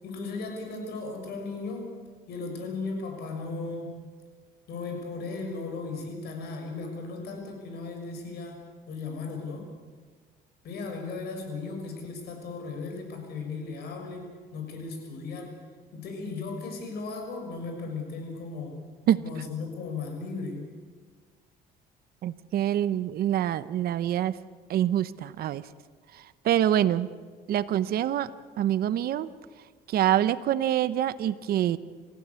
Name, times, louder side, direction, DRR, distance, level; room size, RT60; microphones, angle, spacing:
voice 1, 0.0-1.9 2.3-4.0 4.7-9.7 10.6-15.5 15.9-18.8 19.2-20.6, left 3 dB, 70° left, 4 dB, 6.3 m, -36 dB
voice 2, 22.2-24.3 24.7-25.6 26.4-27.1 27.5-28.3 28.6-29.3 29.9-31.8, right 11 dB, 65° right, 15 dB, 0.9 m, -25 dB
28.0 x 15.5 x 8.4 m, 1.5 s
cardioid pair, 110°, 17 cm